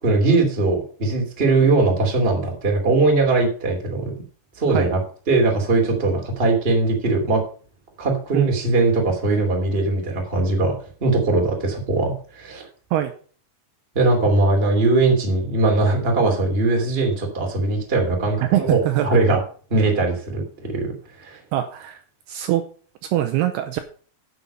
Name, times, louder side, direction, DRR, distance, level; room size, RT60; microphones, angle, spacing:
voice 1, 0.0-4.1 4.6-5.0 5.3-7.4 8.0-10.8 11.0-12.7 13.9-19.4 19.7-20.9 21.2-21.4, right 3 dB, 15° right, 1 dB, 2.1 m, -20 dB
voice 2, 18.4-19.1 21.5-22.0 22.3-22.6 23.1-23.8, right 13 dB, 80° right, 8 dB, 2.5 m, -22 dB
10.0 x 7.2 x 5.4 m, 0.42 s
omnidirectional pair, 5.0 m